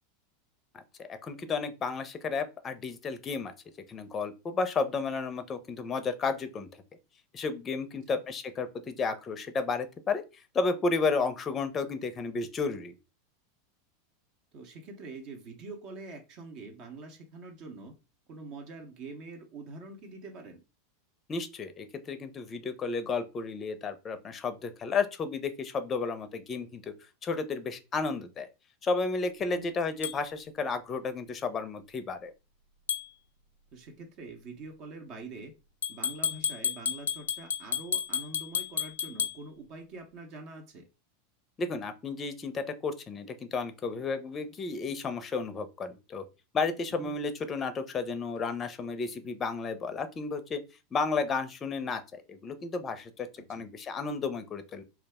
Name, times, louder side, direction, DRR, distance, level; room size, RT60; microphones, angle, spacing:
voice 1, 0.7-3.5 3.9-6.7 7.3-10.2 10.5-12.9 21.3-26.9 27.2-28.5 28.8-32.3 41.6-46.2 46.5-50.6 50.9-54.8, left 4 dB, 30° left, 10 dB, 0.5 m, -32 dB
voice 2, 14.5-17.9 18.3-20.6 29.5-29.7 33.7-35.5 35.9-40.8 47.0-47.1 53.5-53.6, right 3 dB, 50° right, 4 dB, 0.7 m, -45 dB
sound 1, 30.0-30.2 32.9-33.1 35.8-39.4, left 8 dB, 85° left, 0.4 m, -32 dB
2.3 x 2.0 x 3.4 m, 0.28 s
hypercardioid pair, 100°, 0 cm